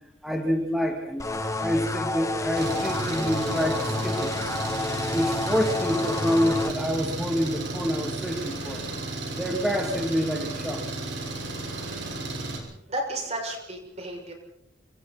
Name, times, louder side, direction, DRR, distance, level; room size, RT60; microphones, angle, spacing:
voice 1, 0.2-1.2 1.6-4.3 5.1-8.8 9.3-10.8, equal, ahead, 0 dB, 2.7 m, -27 dB
sound 1, 1.2-6.7, left 2 dB, 15° left, 1.7 m, -30 dB
Engine, 2.6-12.6, right 2 dB, 65° right, 5.8 m, -34 dB
voice 2, 12.9-14.3, right 1 dB, 35° right, 1 dB, 6.9 m, -32 dB
29.5 x 26.5 x 4.3 m, 0.77 s
head